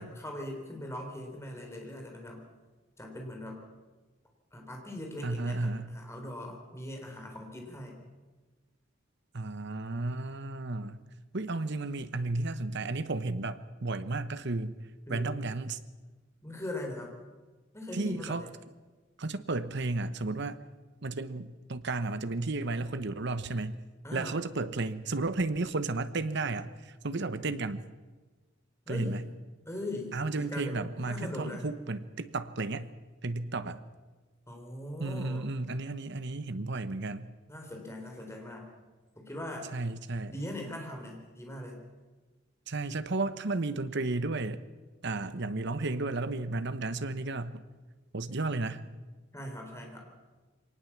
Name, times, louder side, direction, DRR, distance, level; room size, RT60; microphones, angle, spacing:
voice 1, 0.0-2.4 3.0-3.6 4.5-8.0 15.1-15.3 16.4-17.1 17.7-18.5 24.0-24.4 28.9-29.2 29.7-31.7 34.5-35.5 37.5-38.7 39.2-39.7 40.3-41.8 49.3-50.1, left 1 dB, 15° left, 1 dB, 4.0 m, -40 dB
voice 2, 5.2-5.9 9.3-11.0 11.3-14.7 15.1-15.8 17.9-18.4 19.2-20.6 21.0-23.8 24.1-27.8 28.9-29.2 30.1-32.9 33.2-33.8 35.0-37.3 39.7-40.4 42.7-44.6 45.0-47.6 48.1-48.9, right 2 dB, 60° right, 12 dB, 1.1 m, -33 dB
23.5 x 18.5 x 7.4 m, 1.3 s
head